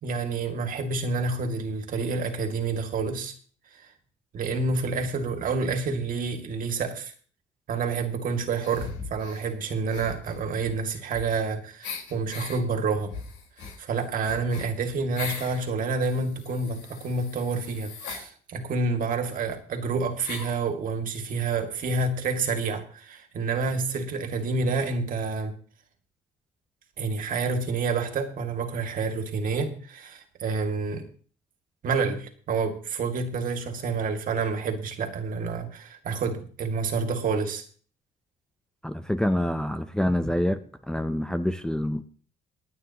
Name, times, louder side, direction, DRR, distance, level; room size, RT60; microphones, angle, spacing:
voice 1, 0.0-3.3 3.7-3.9 4.3-7.1 7.7-13.1 13.8-25.5 27.0-31.0 31.8-37.6, right 4 dB, 55° right, 5 dB, 2.3 m, -28 dB
sound 1, 8.6-9.4 9.9-11.5 11.8-12.6 13.1-15.6 16.0-18.3 19.2-19.3 19.5-19.6 20.2-20.6, left 5 dB, 90° left, 4.3 m, -39 dB
voice 2, 38.8-40.6 40.9-42.0, left 1 dB, 5° left, 8 dB, 0.6 m, -26 dB
27.0 x 9.2 x 3.0 m, 0.43 s
cardioid pair, 110°, 17 cm